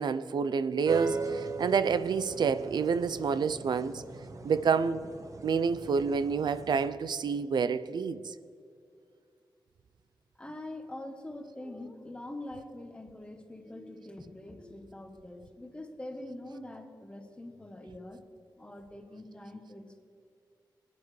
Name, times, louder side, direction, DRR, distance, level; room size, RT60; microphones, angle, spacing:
voice 1, 0.0-4.0 4.4-5.1 5.4-8.3, right 6 dB, 65° right, 14 dB, 0.4 m, -28 dB
sound 1, 0.9-6.9, right 4 dB, 40° right, 0.8 m, -39 dB
voice 2, 10.4-18.2 18.6-20.0, left 1 dB, 15° left, 5 dB, 1.0 m, -44 dB
20.5 x 9.7 x 3.2 m, 2.4 s
wide cardioid pair, 175°, 8 cm